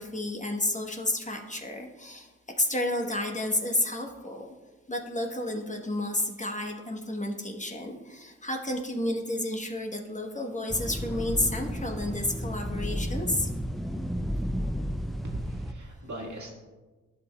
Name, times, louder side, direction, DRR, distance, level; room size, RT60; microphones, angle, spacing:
voice 1, 0.0-2.3 2.6-4.5 4.9-13.5, left 1 dB, 25° left, 3 dB, 1.0 m, -31 dB
sound 1, 10.7-15.7, equal, ahead, 0.4 m, -32 dB
voice 2, 15.2-16.5, right 1 dB, 65° right, -1 dB, 1.7 m, -38 dB
11.5 x 5.5 x 2.2 m, 1.3 s
cardioid pair, 50°, 32 cm